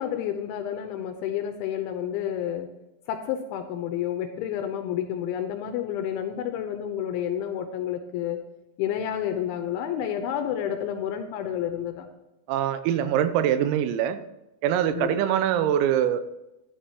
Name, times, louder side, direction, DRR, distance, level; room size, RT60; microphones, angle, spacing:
voice 1, 0.0-2.7 3.1-8.4 8.8-12.1 14.9-15.2, left 10 dB, 85° left, 6 dB, 2.8 m, -30 dB
voice 2, 12.5-14.2 14.6-16.2, right 10 dB, 90° right, 11 dB, 3.5 m, -23 dB
13.0 x 10.0 x 2.9 m, 0.95 s
omnidirectional pair, 5.9 m